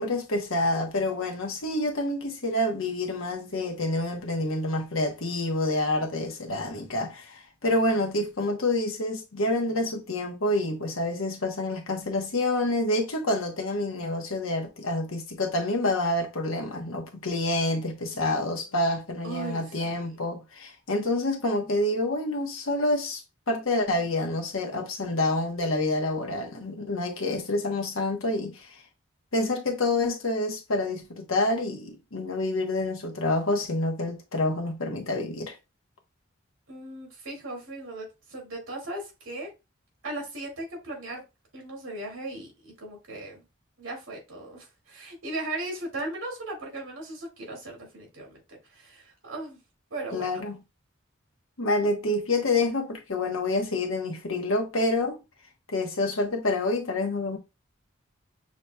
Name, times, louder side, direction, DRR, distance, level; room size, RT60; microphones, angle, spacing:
voice 1, 0.0-23.2 23.5-28.8 29.3-35.5 50.1-50.6 51.6-55.2 55.7-57.4, left 2 dB, 85° left, 1.0 m, -27 dB
voice 2, 18.1-18.8 19.2-20.2 25.0-25.4 36.7-39.5 40.0-41.2 41.5-43.4 43.8-49.6 49.9-50.4, right 2 dB, 75° right, 2.1 m, -38 dB
6.3 x 2.9 x 2.2 m
head